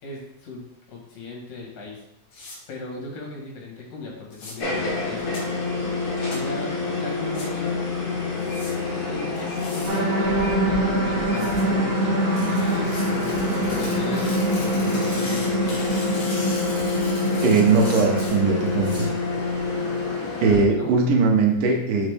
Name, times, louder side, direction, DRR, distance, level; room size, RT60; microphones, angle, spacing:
voice 1, 0.0-2.0 2.7-5.4 6.3-7.7 9.1-15.8 20.7-20.9, left 3 dB, 85° left, -2 dB, 3.3 m, -38 dB
sound 1, 2.3-2.6 4.3-4.5 5.3-5.4 6.3-6.4 7.3-7.5 8.4-8.7 9.4-10.0 11.3-11.6 12.4-19.1, left 2 dB, 65° left, 3.1 m, -39 dB
sound 2, 4.6-20.6, left 3 dB, 45° left, 1.1 m, -27 dB
sound 3, 9.9-18.3, right 2 dB, 55° right, 2.4 m, -26 dB
voice 2, 17.4-19.1 20.4-22.1, right 4 dB, 80° right, 1 dB, 2.5 m, -20 dB
7.3 x 3.9 x 3.5 m, 0.77 s
omnidirectional pair, 3.7 m